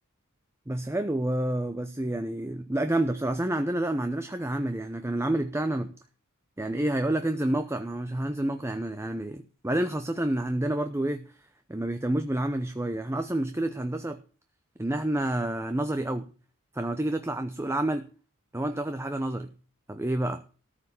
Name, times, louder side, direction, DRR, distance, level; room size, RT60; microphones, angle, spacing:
voice 1, 0.7-5.9 6.6-11.3 11.7-14.2 14.8-16.3 16.7-18.1 18.5-19.5 19.9-20.4, right 1 dB, 10° right, 8 dB, 0.7 m, -29 dB
14.0 x 5.7 x 7.6 m, 0.37 s
head